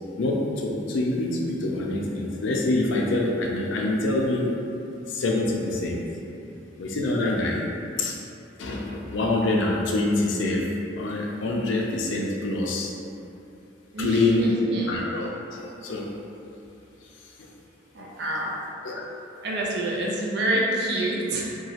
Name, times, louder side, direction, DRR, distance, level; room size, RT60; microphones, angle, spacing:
voice 1, 0.2-4.5 5.1-6.0 6.8-7.6 8.0-8.2 8.6-10.7 11.0-12.9 14.0-14.4 14.9-16.1 18.8-19.0, left 2 dB, 85° left, -1 dB, 0.4 m, -25 dB
voice 2, 13.9-14.9 17.9-18.6 19.4-21.6, right 1 dB, 60° right, -3 dB, 0.4 m, -27 dB
2.9 x 2.3 x 2.8 m, 2.7 s
head